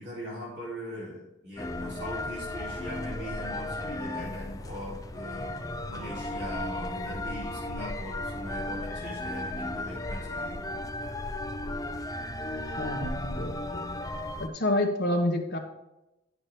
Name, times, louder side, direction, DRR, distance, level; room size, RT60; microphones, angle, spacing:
voice 1, 0.0-5.6 5.9-10.8, equal, 60° right, -6 dB, 2.8 m, -40 dB
sound 1, 1.6-14.5, left 1 dB, 20° left, 0.5 m, -35 dB
voice 2, 12.8-13.5 14.5-15.6, left 1 dB, 55° left, 2 dB, 1.4 m, -27 dB
11.0 x 5.9 x 3.4 m, 0.91 s
head